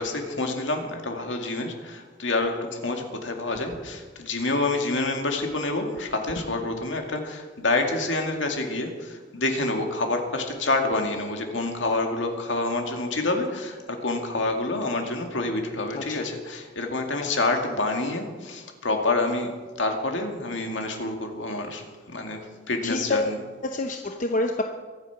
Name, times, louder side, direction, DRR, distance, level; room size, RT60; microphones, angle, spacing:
voice 1, 0.0-19.5 19.8-23.4, left 2 dB, 70° left, 3 dB, 2.2 m, -27 dB
voice 2, 15.9-16.3 17.2-17.5 22.8-23.3 23.6-24.6, left 2 dB, 45° left, 4 dB, 0.8 m, -28 dB
23.5 x 8.6 x 5.9 m, 1.4 s
head